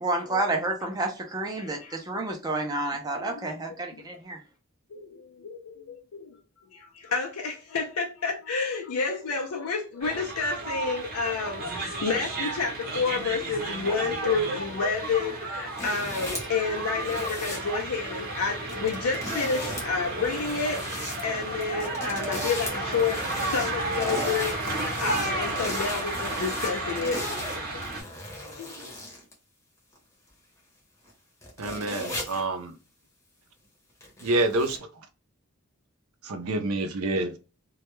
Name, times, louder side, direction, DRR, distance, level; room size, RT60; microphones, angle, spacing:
voice 1, 0.0-4.4, right 2 dB, 15° right, 0.4 m, -30 dB
voice 2, 1.6-2.0 3.1-3.5 4.9-6.4 6.7-27.8 28.5-28.9, left 4 dB, 80° left, 0.5 m, -30 dB
sound 1, 10.0-28.0, right 2 dB, 45° right, 0.7 m, -33 dB
sound 2, 15.8-16.6 17.0-17.6 18.7-19.9 20.2-21.2 21.6-29.3 29.9-30.0 31.1-31.2 31.4-32.4 34.0-34.8, left 1 dB, 15° left, 0.7 m, -37 dB
voice 3, 31.6-32.7 34.2-34.8 36.2-37.4, right 2 dB, 80° right, 0.5 m, -27 dB
2.2 x 2.1 x 3.0 m
head